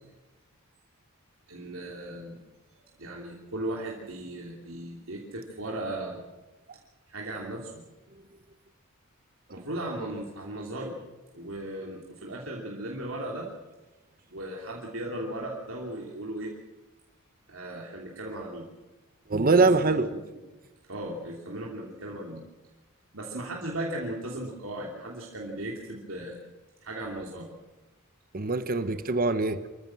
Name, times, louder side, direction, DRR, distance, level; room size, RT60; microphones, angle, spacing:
voice 1, 1.5-2.4 3.0-6.2 7.1-7.8 9.5-11.0 11.3-13.5 14.3-16.5 17.5-18.6 19.5-19.7 20.1-20.2 20.9-22.4 23.1-26.4 26.8-27.5, right 1 dB, 70° right, -1 dB, 3.0 m, -36 dB
voice 2, 19.3-20.1 28.3-29.7, right 3 dB, 45° right, 11 dB, 1.1 m, -23 dB
26.0 x 15.0 x 7.6 m, 1.1 s
head